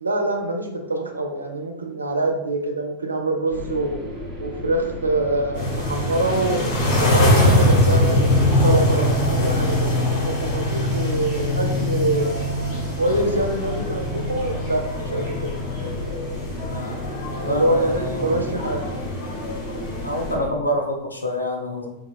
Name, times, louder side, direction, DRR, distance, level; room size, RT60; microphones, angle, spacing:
voice 1, 0.0-4.0 4.4-6.6 7.1-12.3 13.0-15.5 17.4-18.9, right 2 dB, 75° right, 3 dB, 0.4 m, -25 dB
sound 1, 3.5-20.5, left 1 dB, 15° right, 1.1 m, -34 dB
sound 2, 5.6-20.3, left 1 dB, 50° left, 1.2 m, -23 dB
voice 2, 16.7-17.0 17.4-18.3 20.0-21.9, equal, 80° left, 2 dB, 0.4 m, -27 dB
3.5 x 2.2 x 2.2 m, 0.90 s
figure-of-eight pair, 90°, 0 cm